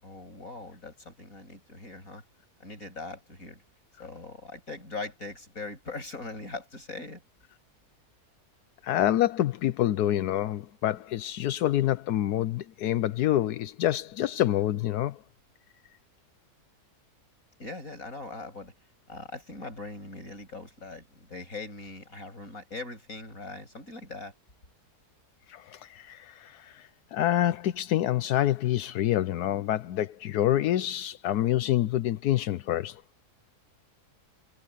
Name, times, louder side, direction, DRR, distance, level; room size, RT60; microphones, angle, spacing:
voice 1, 0.0-2.2 2.6-3.6 4.0-7.2 17.6-18.7 19.1-24.3, left 3 dB, 60° left, 8.1 m, -41 dB
voice 2, 8.8-15.2 25.5-26.8 27.1-33.0, left 13 dB, 80° left, 1.2 m, -27 dB
omnidirectional pair, 1.7 m